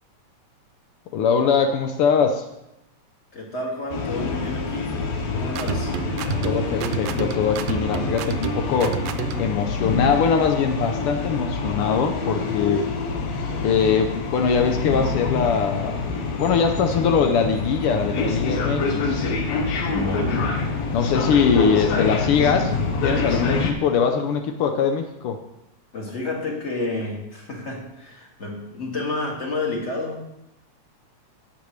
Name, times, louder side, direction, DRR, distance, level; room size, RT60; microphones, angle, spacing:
voice 1, 1.1-2.4 6.4-9.0 9.4-12.9 13.6-19.2 20.9-22.7 23.0-25.4, left 6 dB, 90° left, 6 dB, 1.2 m, -22 dB
voice 2, 3.3-5.9 13.4-13.9 19.8-20.5 21.2-21.3 25.9-30.2, left 2 dB, 25° left, -2 dB, 2.0 m, -30 dB
sound 1, 3.9-23.7, left 4 dB, 70° left, 2.2 m, -26 dB
sound 2, 5.5-9.6, right 9 dB, 80° right, 1.6 m, -30 dB
17.5 x 7.0 x 3.2 m, 0.87 s
omnidirectional pair, 3.4 m